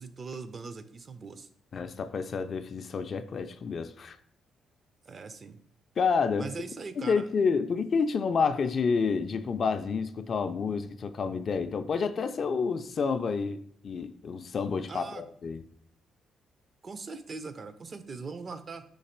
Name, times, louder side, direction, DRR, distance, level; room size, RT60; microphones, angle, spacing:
voice 1, 0.0-1.5 5.1-5.6 6.4-7.3 14.9-15.2 16.8-18.8, right 4 dB, 40° right, 0.4 m, -41 dB
voice 2, 1.7-4.2 6.0-6.5 7.0-15.6, left 5 dB, 50° left, 0.3 m, -29 dB
3.9 x 2.9 x 4.4 m
cardioid pair, 90°, 0 cm